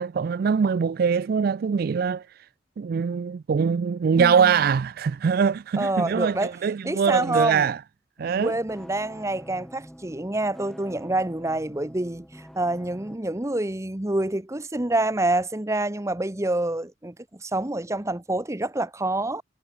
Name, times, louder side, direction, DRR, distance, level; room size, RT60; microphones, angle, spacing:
voice 1, 0.0-2.2 2.8-7.8 8.2-8.5, right 6 dB, 50° right, 0.3 m, -23 dB
voice 2, 4.2-4.6 5.8-6.5 6.8-7.7 8.4-19.4, right 2 dB, 15° right, 0.9 m, -27 dB
sound 1, 8.2-13.2, equal, ahead, 4.3 m, -47 dB
head